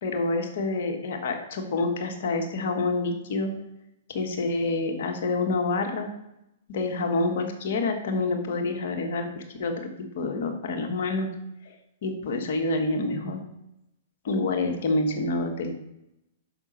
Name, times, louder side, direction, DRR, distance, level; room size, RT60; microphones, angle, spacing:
voice 1, 0.0-3.5 4.1-6.1 6.7-9.7 10.1-11.3 11.6-11.7 12.0-13.4 14.2-15.7, left 3 dB, 50° left, 3 dB, 1.5 m, -27 dB
6.2 x 6.2 x 5.3 m, 0.85 s
figure-of-eight pair, 110°, 0 cm